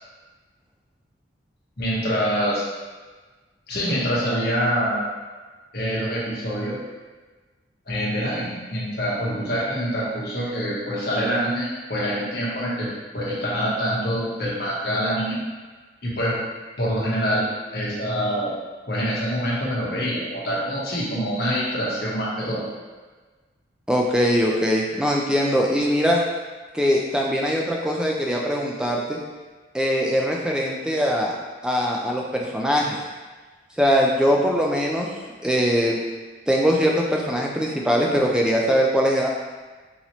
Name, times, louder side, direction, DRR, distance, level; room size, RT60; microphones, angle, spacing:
voice 1, 1.8-2.6 3.7-5.1 5.7-6.8 7.9-15.4 16.0-16.4 16.8-18.5 18.9-22.6, equal, 50° left, -6 dB, 1.0 m, -25 dB
voice 2, 23.9-26.2 26.7-29.2 29.7-31.3 31.6-33.0 33.8-35.1 35.4-36.0 36.5-39.3, equal, 5° right, -1 dB, 0.3 m, -21 dB
4.0 x 2.9 x 2.9 m, 1.3 s
head